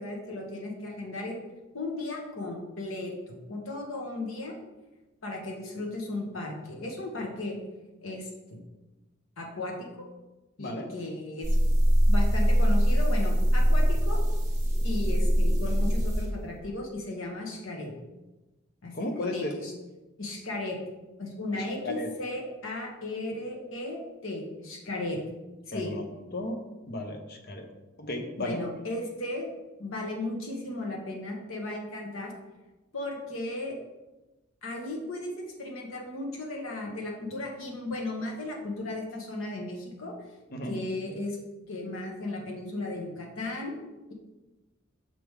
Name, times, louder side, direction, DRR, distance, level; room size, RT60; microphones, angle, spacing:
voice 1, 0.0-1.4 1.7-4.6 5.2-7.6 8.0-8.6 9.4-9.9 10.6-11.5 12.1-14.2 14.8-17.9 18.8-19.7 20.2-20.8 21.2-25.2 25.7-25.9 28.4-29.5 29.8-32.3 32.9-33.8 34.6-40.1 40.6-41.4 41.7-43.7, left 2 dB, 90° left, 0 dB, 1.3 m, -35 dB
sound 1, 11.4-16.2, equal, 15° right, 1.2 m, -23 dB
voice 2, 18.9-19.5 21.5-22.1 25.7-26.0 26.3-26.6 26.9-27.7 28.0-28.6 40.5-40.7, left 1 dB, 50° left, 4 dB, 0.7 m, -34 dB
6.0 x 3.6 x 4.7 m, 1.1 s
head